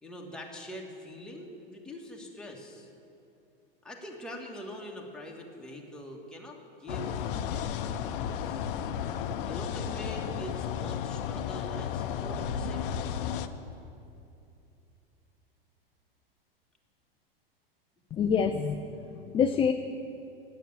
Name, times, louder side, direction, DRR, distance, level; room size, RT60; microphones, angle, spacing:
voice 1, 0.0-2.9 3.8-8.7 9.4-13.2, equal, 5° left, -2 dB, 1.7 m, -44 dB
sound 1, 6.9-13.5, left 8 dB, 60° left, 0.7 m, -33 dB
sound 2, 12.3-14.8, right 3 dB, 75° right, 1.4 m, -45 dB
voice 2, 18.1-18.8 19.1-19.7, left 7 dB, 20° left, 6 dB, 0.4 m, -26 dB
9.1 x 7.5 x 8.8 m, 2.7 s
hypercardioid pair, 105°, 30 cm